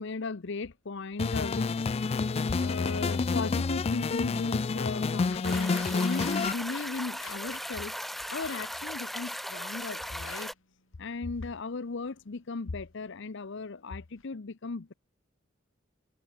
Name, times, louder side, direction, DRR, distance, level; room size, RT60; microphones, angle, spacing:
voice 1, 0.0-1.9 2.6-7.9 8.3-10.5 11.0-14.9, left 3 dB, 60° left, 0.7 m, -36 dB
sound 1, 1.2-6.5, left 4 dB, 30° left, 0.3 m, -29 dB
sound 2, 5.2-14.3, left 6 dB, 80° left, 6.2 m, -54 dB
sound 3, 5.4-10.5, equal, ahead, 0.9 m, -38 dB
head